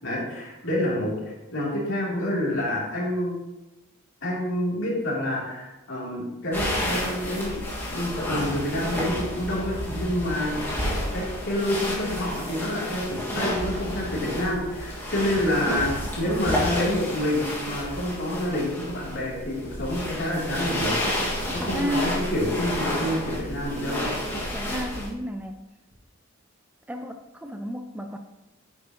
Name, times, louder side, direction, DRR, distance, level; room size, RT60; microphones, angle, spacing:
voice 1, 0.0-1.1 1.5-3.3 4.2-7.6 7.9-10.7 11.1-21.0 21.5-24.0, left 1 dB, 65° left, -5 dB, 3.0 m, -28 dB
sound 1, 6.5-25.1, left 1 dB, 10° left, 1.8 m, -30 dB
voice 2, 21.5-22.2 24.5-25.6 26.9-28.2, equal, 5° right, 6 dB, 0.4 m, -32 dB
9.4 x 7.3 x 2.9 m, 1.0 s
head